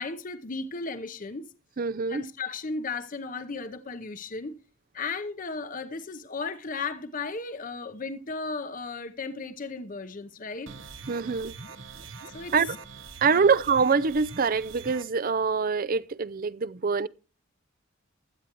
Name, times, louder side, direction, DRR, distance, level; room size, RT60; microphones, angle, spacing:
voice 1, 0.0-1.5 2.1-4.6 4.9-10.7 12.3-12.5 13.3-13.5, left 4 dB, 45° left, 0.8 m, -35 dB
voice 2, 1.8-2.2 11.1-11.5 12.5-12.7 13.2-17.1, right 5 dB, 45° right, 0.5 m, -24 dB
sound 1, 10.7-15.0, right 4 dB, 70° right, 1.1 m, -43 dB
16.0 x 11.5 x 3.0 m
head